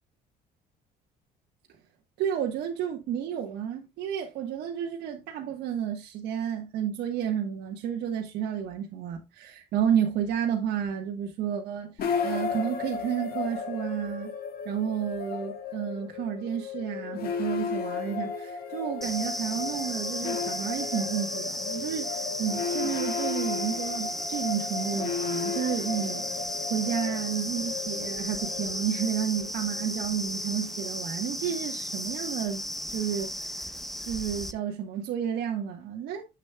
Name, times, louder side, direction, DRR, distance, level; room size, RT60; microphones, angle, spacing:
voice 1, 2.2-12.0 12.2-14.3 14.6-26.2 26.7-32.6 32.9-33.7 34.0-36.3, right 9 dB, 80° right, 1.4 m, -31 dB
sound 1, 12.0-31.1, left 6 dB, 65° left, 1.7 m, -35 dB
sound 2, 19.0-34.5, equal, ahead, 0.8 m, -35 dB
10.0 x 7.4 x 2.3 m
cardioid pair, 110°, 17 cm